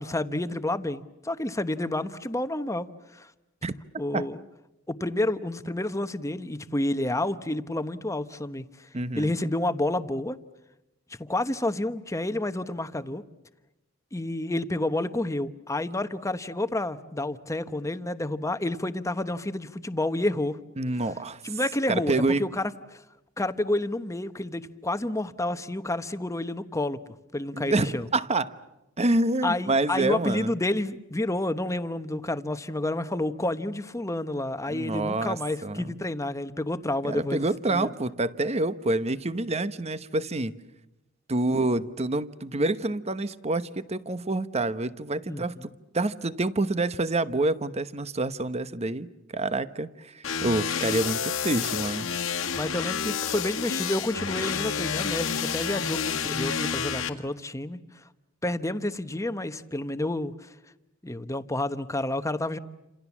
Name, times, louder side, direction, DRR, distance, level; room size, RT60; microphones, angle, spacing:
voice 1, 0.0-2.9 3.1-3.3 4.0-4.4 4.9-8.6 9.2-10.4 11.2-13.2 14.1-20.6 21.4-23.0 23.4-28.1 29.4-37.9 45.3-45.7 52.6-57.8 58.4-60.5 61.0-62.6, left 1 dB, 15° left, 11 dB, 1.0 m, -29 dB
voice 2, 8.9-9.3 20.8-21.6 21.9-22.4 27.5-28.6 29.0-30.5 34.7-36.0 37.0-40.5 41.3-52.1, right 2 dB, 30° right, 13 dB, 1.0 m, -27 dB
sound 1, 50.2-57.1, left 7 dB, 75° left, 1.8 m, -29 dB
29.0 x 27.0 x 7.3 m, 0.96 s
head